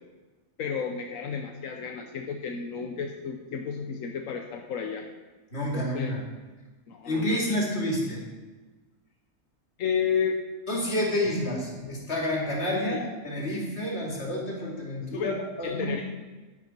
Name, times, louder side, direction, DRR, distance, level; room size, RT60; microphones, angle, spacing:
voice 1, 0.6-5.1 5.7-6.1 6.9-7.4 9.8-10.4 12.9-13.0 15.1-16.0, left 6 dB, 85° left, 3 dB, 1.2 m, -32 dB
voice 2, 5.5-6.2 7.0-8.2 10.7-13.0 13.2-16.0, left 1 dB, 55° left, -3 dB, 2.9 m, -29 dB
11.0 x 11.0 x 4.4 m, 1.2 s
omnidirectional pair, 1.3 m